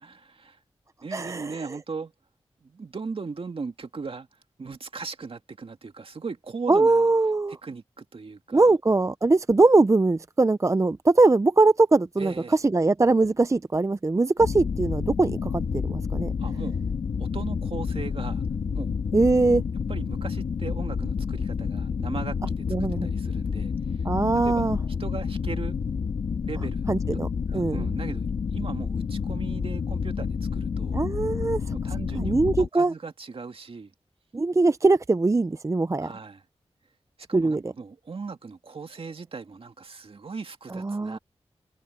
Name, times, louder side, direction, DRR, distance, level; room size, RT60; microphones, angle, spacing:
voice 1, 0.3-0.6 1.0-2.1 2.6-4.3 4.6-7.1 7.5-8.8 12.2-12.6 16.4-16.8 17.2-18.4 18.7-18.9 19.9-24.0 24.4-24.7 25.0-25.8 26.4-26.9 27.5-28.3 28.5-31.0 31.7-33.9 36.0-36.4 37.3-41.2, right 4 dB, 60° right, 2.1 m, -38 dB
voice 2, 1.1-1.6 6.7-7.6 8.5-16.3 19.1-19.6 22.7-23.1 24.0-24.8 26.9-27.3 27.5-27.9 30.9-31.6 32.1-32.9 34.3-36.1 37.3-37.7 40.7-41.2, right 3 dB, 30° right, 0.6 m, -21 dB
sound 1, 14.4-32.7, left 6 dB, 80° left, 1.6 m, -29 dB
cardioid pair, 55°, 11 cm